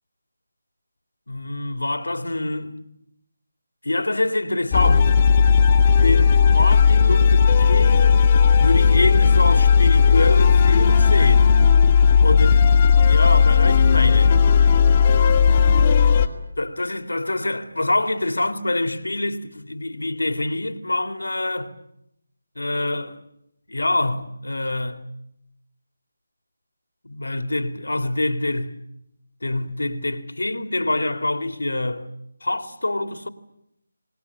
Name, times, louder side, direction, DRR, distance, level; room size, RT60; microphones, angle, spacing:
voice 1, 1.3-2.8 3.8-5.2 6.0-11.7 12.2-12.7 13.0-14.4 16.6-21.7 22.6-23.2 23.7-25.0 27.0-28.7 29.4-32.1 32.4-33.3, left 2 dB, 90° left, 2.5 m, -25 dB
sound 1, 4.7-16.3, left 6 dB, 25° left, 2.2 m, -15 dB
27.0 x 20.0 x 9.9 m
figure-of-eight pair, 165°, 0 cm